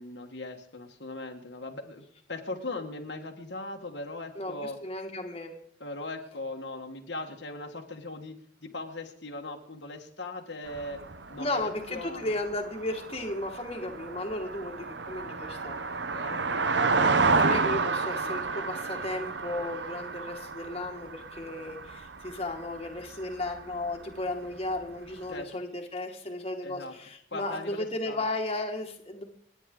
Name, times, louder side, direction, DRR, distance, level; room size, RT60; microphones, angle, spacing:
voice 1, 0.0-4.8 5.8-11.0 11.3-12.4 16.1-17.6 25.3-25.6 26.6-26.9 27.3-28.2, left 2 dB, 65° left, 2 dB, 1.8 m, -39 dB
voice 2, 4.4-5.5 11.4-15.8 17.4-29.2, left 2 dB, 30° left, 2 dB, 2.0 m, -34 dB
sound 1, 10.7-23.6 23.9-24.0 24.3-24.4, right 4 dB, 65° right, 1.0 m, -31 dB
29.5 x 10.0 x 3.9 m, 0.66 s
head